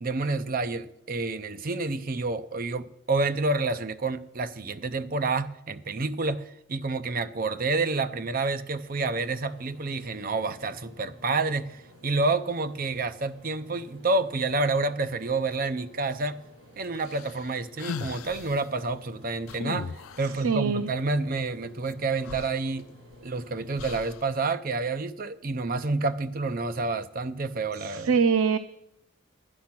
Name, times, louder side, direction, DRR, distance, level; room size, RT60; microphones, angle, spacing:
voice 1, 0.0-16.4 16.8-22.9 23.2-28.1, right 3 dB, 45° right, 0.6 m, -29 dB
sound 1, 8.8-24.0, equal, 65° right, 5.3 m, -52 dB
sound 2, 17.0-18.6 19.5-20.4 21.9-22.0 22.2-23.2 23.8-24.3, left 5 dB, 85° left, 0.5 m, -38 dB
voice 2, 20.2-20.9 27.8-28.6, right 6 dB, 85° right, 0.5 m, -24 dB
11.5 x 9.5 x 6.0 m
head